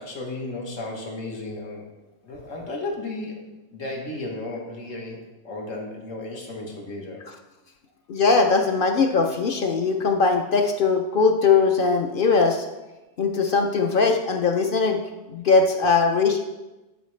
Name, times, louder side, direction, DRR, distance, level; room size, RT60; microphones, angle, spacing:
voice 1, 0.0-1.9 2.2-7.2, left 2 dB, 90° left, 0 dB, 1.6 m, -34 dB
voice 2, 8.1-12.7 13.2-15.0 15.3-16.4, left 4 dB, 55° left, 4 dB, 0.6 m, -20 dB
11.0 x 4.8 x 3.2 m, 1.1 s
omnidirectional pair, 1.3 m